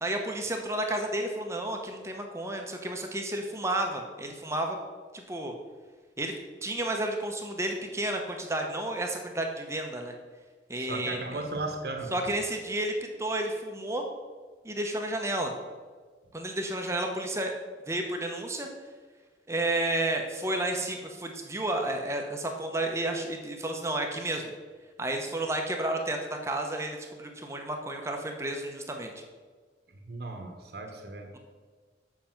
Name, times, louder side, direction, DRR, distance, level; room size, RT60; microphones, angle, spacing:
voice 1, 0.0-4.8 5.1-5.5 6.2-6.3 6.6-10.1 10.7-11.4 12.1-14.0 14.6-15.5 16.3-17.5 17.9-18.7 19.5-24.4 25.0-29.1, right 1 dB, 15° right, 3 dB, 0.8 m, -31 dB
voice 2, 10.8-12.1 29.9-31.3, right 2 dB, 60° right, 4 dB, 1.2 m, -36 dB
7.7 x 5.7 x 5.8 m, 1.5 s
head